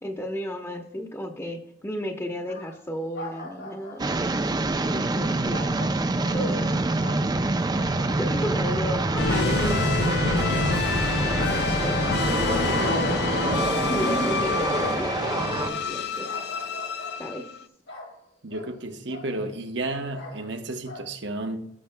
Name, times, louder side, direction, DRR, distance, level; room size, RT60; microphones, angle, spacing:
voice 1, 0.0-4.2 4.9-5.7 6.1-6.8 8.1-16.3 17.2-17.5, equal, 15° left, 1.0 m, -34 dB
sound 1, 2.5-2.9 3.1-4.1 5.5-6.7 7.0-8.2 8.6-9.8 10.1-10.4 10.7-11.0 11.4-11.9 12.3-13.0 13.3-15.9 16.2-17.3 17.9-18.2 18.5-18.8 19.1-20.6 20.8-21.0, left 2 dB, 80° left, 2.3 m, -42 dB
sound 2, 4.0-15.7, right 2 dB, 25° right, 0.5 m, -26 dB
sound 3, 9.2-17.6, left 4 dB, 65° left, 0.6 m, -27 dB
voice 2, 18.4-21.7, right 2 dB, 80° right, 1.0 m, -32 dB
17.0 x 5.8 x 2.2 m
head